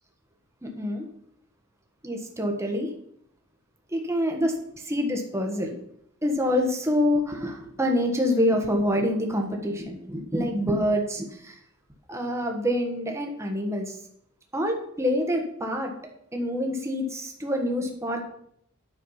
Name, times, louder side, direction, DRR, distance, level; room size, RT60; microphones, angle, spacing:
voice 1, 0.6-1.0 2.0-2.9 3.9-5.7 6.2-11.5 12.1-14.0 14.5-15.9 16.3-18.2, left 1 dB, 15° right, 2 dB, 1.4 m, -26 dB
9.7 x 6.5 x 5.7 m, 0.70 s
head